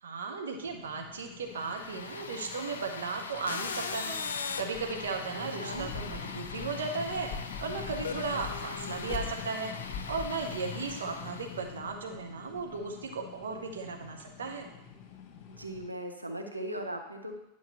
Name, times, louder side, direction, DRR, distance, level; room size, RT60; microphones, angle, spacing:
voice 1, 0.0-4.2 4.6-7.3 7.6-9.7 10.1-14.7, right 4 dB, 65° right, 3 dB, 1.0 m, -36 dB
sound 1, 0.6-15.9, left 7 dB, 40° left, 1.1 m, -44 dB
sound 2, 1.5-11.7, left 5 dB, 65° left, 0.6 m, -40 dB
voice 2, 5.3-5.9 15.6-17.4, right 1 dB, 85° right, 4 dB, 0.8 m, -38 dB
10.5 x 5.7 x 3.1 m, 0.88 s
figure-of-eight pair, 90°, 0 cm